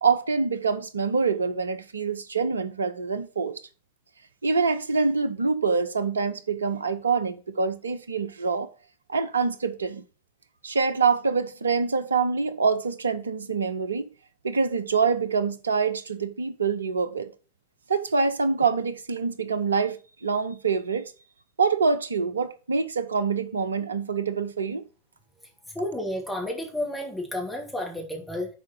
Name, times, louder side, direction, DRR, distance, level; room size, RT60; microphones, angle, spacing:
voice 1, 0.0-3.5 4.4-8.7 9.1-10.0 10.6-14.1 14.4-17.3 17.9-21.1 21.6-24.9, right 5 dB, 75° right, 0.7 m, -25 dB
voice 2, 25.7-28.5, left 1 dB, 5° left, 2.5 m, -31 dB
7.1 x 4.7 x 6.4 m
figure-of-eight pair, 90°, 0 cm